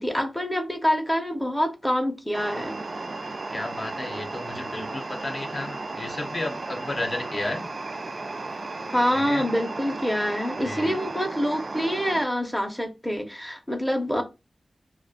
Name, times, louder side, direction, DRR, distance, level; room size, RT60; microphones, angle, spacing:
voice 1, 0.0-2.7 8.9-14.2, equal, 5° left, 0.5 m, -26 dB
sound 1, 2.3-12.2, right 3 dB, 55° right, 0.3 m, -34 dB
voice 2, 3.5-7.7 9.1-9.5 10.6-11.1, left 2 dB, 50° left, 0.5 m, -33 dB
2.3 x 2.1 x 2.6 m
wide cardioid pair, 70°, 0 cm